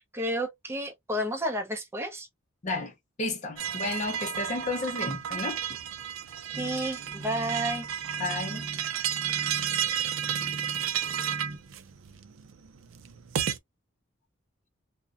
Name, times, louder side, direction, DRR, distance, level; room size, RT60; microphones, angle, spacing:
voice 1, 0.1-2.3 6.6-7.9, equal, 15° right, 0.5 m, -31 dB
voice 2, 2.6-5.6 8.2-8.7, left 3 dB, 40° left, 0.5 m, -32 dB
sound 1, 3.6-13.6, right 9 dB, 75° right, 0.4 m, -32 dB
sound 2, 6.5-11.6, right 1 dB, 45° right, 0.9 m, -42 dB
2.5 x 2.1 x 2.4 m
head